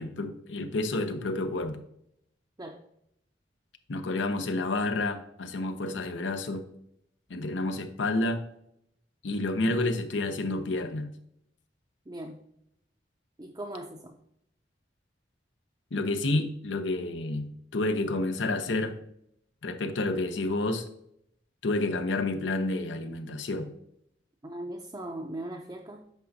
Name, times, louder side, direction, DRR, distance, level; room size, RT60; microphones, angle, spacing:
voice 1, 0.0-1.8 3.9-6.6 7.3-8.4 9.2-11.1 15.9-19.0 19.6-20.9 21.6-23.7, left 2 dB, 80° left, 9 dB, 0.7 m, -29 dB
voice 2, 12.1-12.4 13.4-14.1 24.4-26.1, right 1 dB, 20° right, 1 dB, 0.5 m, -39 dB
8.2 x 5.2 x 2.7 m, 0.75 s
head